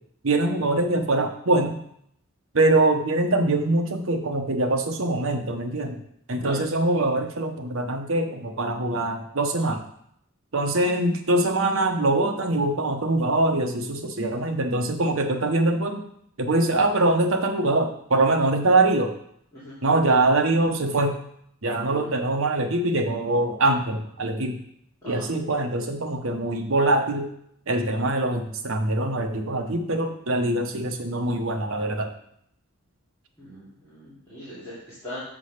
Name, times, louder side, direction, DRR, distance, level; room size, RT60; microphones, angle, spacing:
voice 1, 0.2-1.8 2.5-6.0 6.3-9.9 10.5-16.0 16.4-19.1 19.8-21.1 21.6-24.6 25.0-27.3 27.7-32.1, right 2 dB, 75° right, 5 dB, 1.0 m, -23 dB
voice 2, 33.4-35.2, left 1 dB, 15° left, -12 dB, 2.7 m, -39 dB
7.4 x 3.8 x 6.6 m, 0.70 s
head